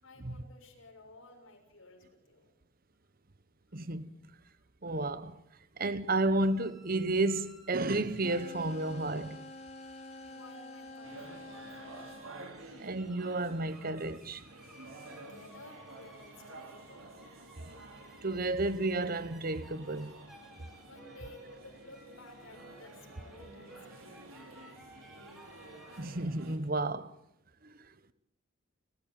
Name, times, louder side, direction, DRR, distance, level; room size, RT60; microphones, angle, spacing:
voice 1, 0.0-2.5 10.2-12.0 15.1-17.1 20.9-24.4, left 2 dB, 85° left, 6.8 m, -55 dB
voice 2, 3.7-4.1 4.8-5.4 5.8-9.5 12.8-14.4 18.2-20.1 26.0-27.1 27.6-27.7, right 2 dB, 45° right, 1.1 m, -32 dB
sound 1, 6.4-26.0, equal, ahead, 4.0 m, -58 dB
sound 2, 8.1-12.3, left 2 dB, 30° left, 4.1 m, -47 dB
sound 3, 11.0-26.6, right 2 dB, 80° right, 4.3 m, -51 dB
30.0 x 14.0 x 9.3 m
head